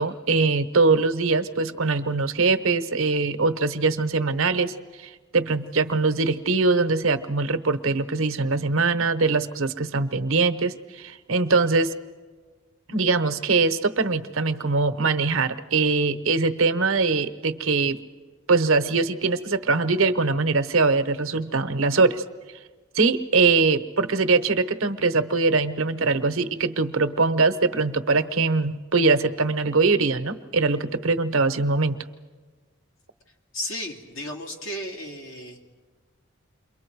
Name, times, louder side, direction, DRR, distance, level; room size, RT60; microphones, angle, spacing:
voice 1, 0.0-11.9 12.9-18.0 18.5-22.2 22.9-32.0, right 3 dB, 80° right, 10 dB, 0.9 m, -22 dB
voice 2, 33.5-35.6, left 1 dB, 80° left, -1 dB, 2.6 m, -34 dB
28.5 x 23.0 x 4.7 m, 1.4 s
head